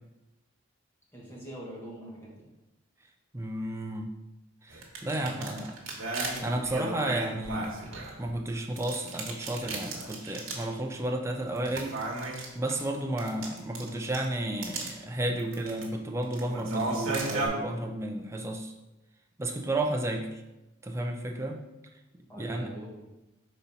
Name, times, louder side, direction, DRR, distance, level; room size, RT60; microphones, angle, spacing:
voice 1, 1.1-2.4 5.1-5.8 6.3-6.5 22.3-23.1, right 1 dB, 10° left, -4 dB, 1.3 m, -44 dB
voice 2, 3.3-4.1 4.6-5.8 6.4-7.7 8.2-12.0 12.5-18.7 19.4-20.4 20.8-21.6 22.4-22.7, right 1 dB, 15° right, 3 dB, 0.4 m, -32 dB
sound 1, 4.7-8.4 8.8-10.7 11.0-11.1 11.6-14.2 14.6-14.9 15.4-15.9 16.2-17.5, right 3 dB, 70° right, 1.2 m, -35 dB
4.2 x 4.1 x 5.5 m, 1.0 s
head